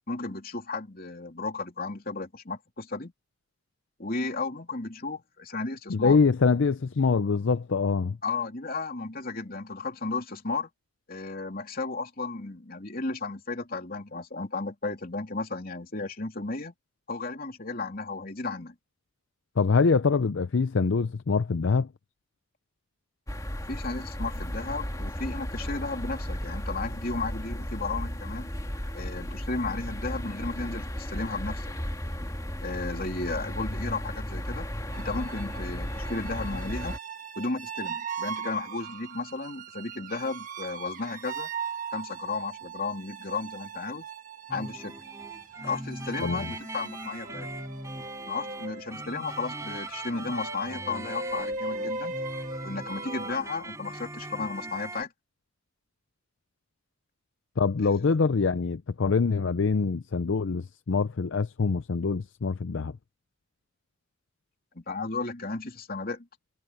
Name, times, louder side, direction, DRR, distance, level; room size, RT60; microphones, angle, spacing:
voice 1, 0.1-3.1 4.0-6.2 8.2-10.7 11.1-16.7 17.1-18.7 23.7-28.5 28.9-31.7 32.6-34.7 35.0-37.0 37.3-41.5 41.9-44.1 44.5-45.0 45.6-47.5 48.3-52.1 52.6-55.1 57.8-58.2 64.7-66.3, left 3 dB, 45° left, 3.2 m, -34 dB
voice 2, 5.9-8.2 19.6-21.9 46.2-46.4 57.6-63.0, left 4 dB, 70° left, 0.5 m, -24 dB
sound 1, 23.3-37.0, equal, 15° left, 2.4 m, -35 dB
sound 2, 34.9-53.3, right 4 dB, 40° right, 1.7 m, -39 dB
sound 3, 44.5-55.0, right 2 dB, 15° right, 6.6 m, -40 dB
head